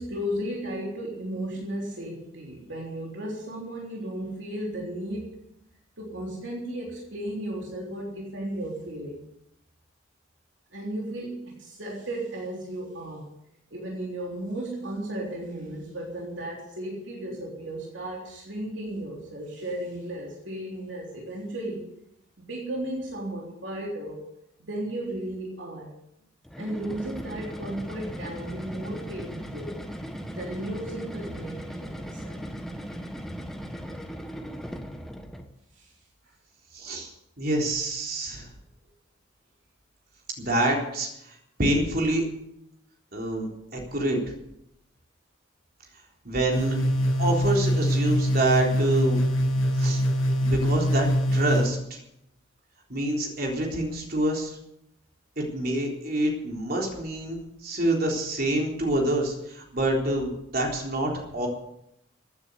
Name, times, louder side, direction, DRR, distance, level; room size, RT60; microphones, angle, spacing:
voice 1, 0.0-5.4 6.0-9.2 10.7-13.3 13.7-21.9 22.4-24.2 24.6-25.9 26.6-29.8 30.3-32.4 35.7-35.9, right 1 dB, 65° right, -2 dB, 3.6 m, -35 dB
sound 1, 26.4-35.5, equal, ahead, 1.3 m, -38 dB
voice 2, 36.7-37.1 37.4-38.5 40.4-41.1 41.6-42.2 43.1-44.2 46.2-46.8 47.2-49.2 49.8-50.0 50.4-52.0 52.9-54.6 55.4-61.5, right 1 dB, 50° right, 0 dB, 3.8 m, -27 dB
sound 2, 46.5-51.7, equal, 85° left, 6.5 m, -24 dB
15.5 x 9.7 x 8.1 m, 0.80 s
head